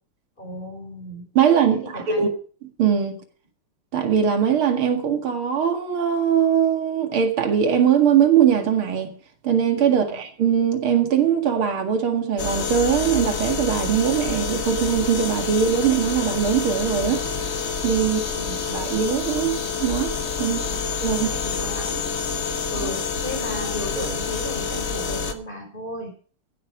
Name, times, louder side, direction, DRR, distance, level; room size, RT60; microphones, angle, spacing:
voice 1, 0.4-1.2 1.8-2.3 9.8-10.2 18.0-18.8 20.6-20.8 21.1-22.0 22.7-26.1, left 1 dB, 20° left, 5.5 m, -35 dB
voice 2, 1.3-2.3 2.8-3.2 3.9-9.2 9.4-17.2 17.8-18.2 18.7-20.1 20.4-21.3, right 8 dB, 80° right, 2.8 m, -21 dB
sound 1, 12.4-25.3, left 5 dB, 40° left, 1.2 m, -27 dB
15.5 x 12.0 x 5.0 m
omnidirectional pair, 2.3 m